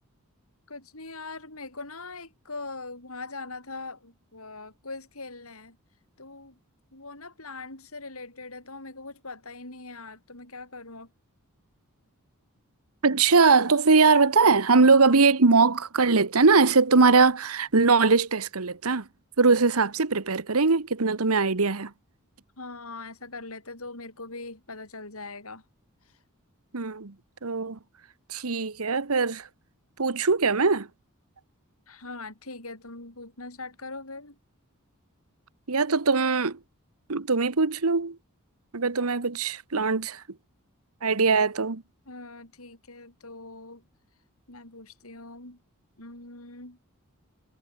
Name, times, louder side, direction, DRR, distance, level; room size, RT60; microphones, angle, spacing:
voice 1, 0.7-5.8 6.2-6.6 6.9-11.1 22.6-25.6 31.9-34.4 42.1-43.8 44.5-45.6 46.0-46.8, left 3 dB, 70° left, 7.3 m, -41 dB
voice 2, 13.0-19.1 19.4-21.9 26.7-27.1 27.4-27.8 28.3-29.5 30.0-30.9 35.7-36.6 37.1-38.2 38.7-40.2 41.0-41.8, right 4 dB, 75° right, 1.2 m, -21 dB
head